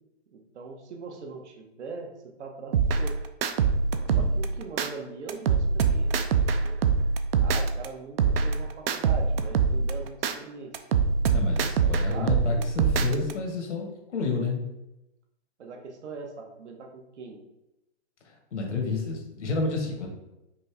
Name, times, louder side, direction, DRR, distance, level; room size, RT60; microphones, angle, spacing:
voice 1, 0.3-3.2 4.2-6.8 7.4-10.7 11.8-12.7 15.6-17.4, right 4 dB, 75° right, 2 dB, 1.0 m, -41 dB
sound 1, 2.7-4.9 5.3-7.9 8.2-10.3 10.7-13.3, right 5 dB, 55° right, 0.5 m, -24 dB
voice 2, 11.3-14.6 18.2-20.1, left 4 dB, 85° left, 1 dB, 1.3 m, -30 dB
5.3 x 2.7 x 3.3 m, 0.93 s
hypercardioid pair, 150°, 35 cm